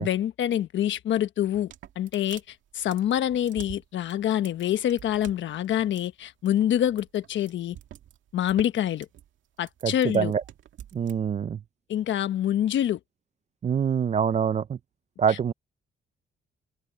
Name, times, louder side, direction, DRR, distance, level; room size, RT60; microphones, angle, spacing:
voice 1, 0.0-7.8 8.3-9.1 9.6-10.3 11.9-13.0 15.3-15.4, left 11 dB, 70° left, 1.2 m, -26 dB
sound 1, 1.4-11.2, right 11 dB, 75° right, 2.0 m, -47 dB
voice 2, 9.8-10.4 10.9-11.6 13.6-14.8 15.2-15.5, right 7 dB, 35° right, 0.4 m, -25 dB
open air
cardioid pair, 90°, 20 cm